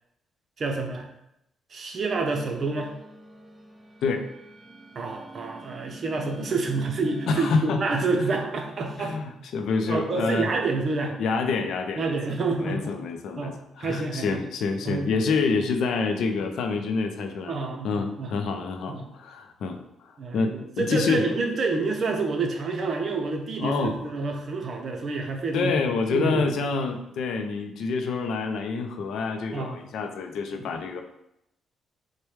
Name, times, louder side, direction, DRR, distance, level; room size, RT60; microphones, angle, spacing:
voice 1, 0.6-1.1 1.7-2.9 5.0-9.2 9.9-11.1 12.0-12.9 13.4-14.4 14.8-15.1 17.5-18.3 18.9-19.1 20.2-25.7 26.1-26.6 29.5-29.8, right 3 dB, 50° right, 3 dB, 0.6 m, -28 dB
sound 1, 2.3-7.5, right 2 dB, 5° right, 0.5 m, -44 dB
voice 2, 7.3-7.8 8.2-8.3 9.0-10.5 11.2-12.2 12.6-19.8 20.0-21.2 23.6-24.0 25.5-31.0, left 4 dB, 75° left, 6 dB, 0.4 m, -27 dB
4.4 x 2.2 x 3.2 m, 0.82 s
cardioid pair, 90°, 0 cm